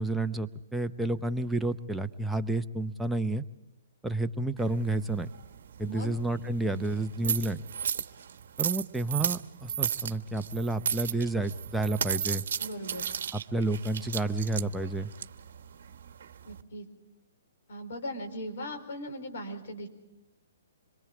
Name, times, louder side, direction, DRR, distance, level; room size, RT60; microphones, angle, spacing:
voice 1, 0.0-3.4 4.0-5.3 5.8-7.6 8.6-12.4 13.3-15.1, right 2 dB, 5° right, 6 dB, 0.7 m, -30 dB
sound 1, 4.6-16.6, right 8 dB, 65° right, 1.1 m, -35 dB
voice 2, 12.6-13.1 16.4-16.9 17.7-19.9, equal, 65° left, 5 dB, 4.6 m, -39 dB
27.0 x 22.5 x 4.9 m, 0.92 s
hypercardioid pair, 145°, 0 cm